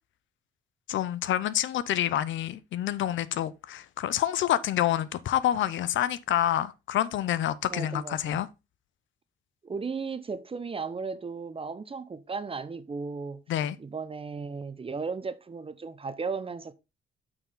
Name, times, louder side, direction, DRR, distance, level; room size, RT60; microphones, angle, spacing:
voice 1, 0.9-8.5 13.5-13.8, left 12 dB, 75° left, 0.7 m, -27 dB
voice 2, 7.7-8.4 9.6-13.4 13.8-16.7, right 4 dB, 30° right, 0.9 m, -35 dB
8.7 x 4.8 x 3.8 m
cardioid pair, 90°, 20 cm